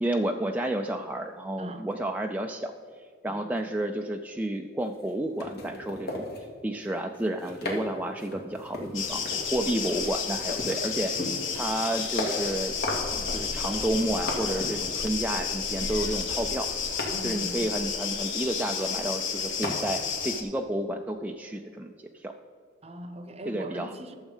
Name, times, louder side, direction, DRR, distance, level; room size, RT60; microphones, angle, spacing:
voice 1, 0.0-2.7 3.2-6.2 6.6-12.8 13.1-16.7 17.2-22.3 23.5-23.9, right 1 dB, 10° right, 3 dB, 0.4 m, -31 dB
voice 2, 1.6-1.9 3.3-3.5 9.6-9.9 17.1-17.8 22.8-24.2, equal, 35° right, 8 dB, 0.8 m, -41 dB
sound 1, 4.9-5.1 5.4-6.5 7.1-7.9 8.2-14.8 15.3-15.5 16.2-17.2 18.6-18.7 19.0-19.2 19.6-19.7, left 2 dB, 55° left, 2.1 m, -36 dB
sound 2, 8.9-20.4, left 6 dB, 90° left, 1.1 m, -31 dB
12.0 x 7.2 x 5.4 m, 2.1 s
head